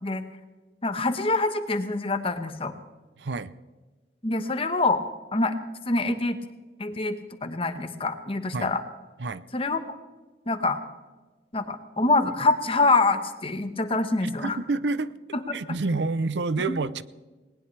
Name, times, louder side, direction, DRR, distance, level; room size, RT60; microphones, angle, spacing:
voice 1, 0.8-2.7 4.2-5.0 5.3-5.5 5.9-6.4 6.8-8.8 9.5-9.9 10.5-10.8 11.5-14.6 15.5-15.8, left 3 dB, 35° left, 8 dB, 1.2 m, -25 dB
voice 2, 3.2-3.5 8.5-8.7 9.2-9.4 14.2-15.1 15.5-17.0, right 3 dB, 80° right, 15 dB, 0.6 m, -28 dB
19.0 x 19.0 x 3.3 m, 1.3 s
head